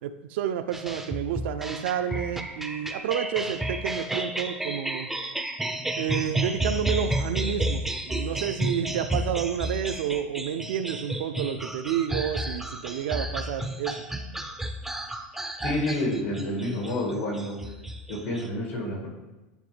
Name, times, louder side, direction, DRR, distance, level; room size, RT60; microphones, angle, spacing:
voice 1, 0.0-5.1 6.0-14.0, right 9 dB, 75° right, 10 dB, 0.4 m, -30 dB
sound 1, 0.7-18.5, right 1 dB, 5° right, 0.4 m, -32 dB
voice 2, 15.6-17.6 18.1-19.1, left 1 dB, 85° left, -3 dB, 2.1 m, -29 dB
9.1 x 3.2 x 3.2 m, 1.1 s
supercardioid pair, 135°, 6 cm